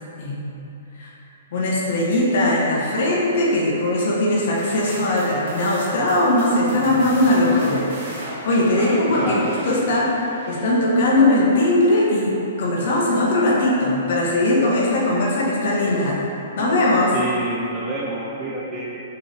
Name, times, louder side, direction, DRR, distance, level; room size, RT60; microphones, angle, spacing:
voice 1, 0.2-0.5 1.0-1.1 1.5-7.8 8.4-10.1 10.4-16.2 16.6-17.1, left 1 dB, 50° left, -4 dB, 0.9 m, -19 dB
sound 1, 4.6-11.1, right 1 dB, 35° right, 1.2 m, -35 dB
voice 2, 8.8-9.5 17.1-19.0, right 2 dB, 15° right, -5 dB, 0.4 m, -28 dB
5.1 x 3.0 x 3.3 m, 2.7 s
hypercardioid pair, 170°, 0 cm